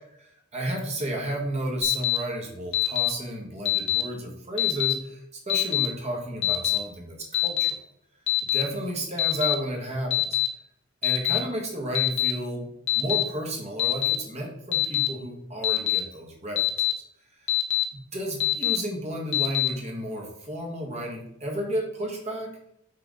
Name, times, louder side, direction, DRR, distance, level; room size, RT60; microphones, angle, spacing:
voice 1, 0.2-7.7 8.5-10.3 11.0-12.7 12.9-16.6 17.9-22.5, right 1 dB, 35° right, -1 dB, 1.6 m, -32 dB
Alarm, 1.8-2.2 2.7-3.1 3.7-4.0 4.6-4.9 5.5-5.9 6.4-6.8 7.3-7.7 8.3-8.6 9.2-9.5 10.1-10.5 11.0-11.4 11.9-12.3 12.9-13.2 13.8-14.2 14.7-15.1 15.6-16.0 16.6-16.9 17.5-17.8 18.4-18.8 19.3-19.7, left 16 dB, 60° left, 1.0 m, -23 dB
5.9 x 3.5 x 5.1 m, 0.76 s
head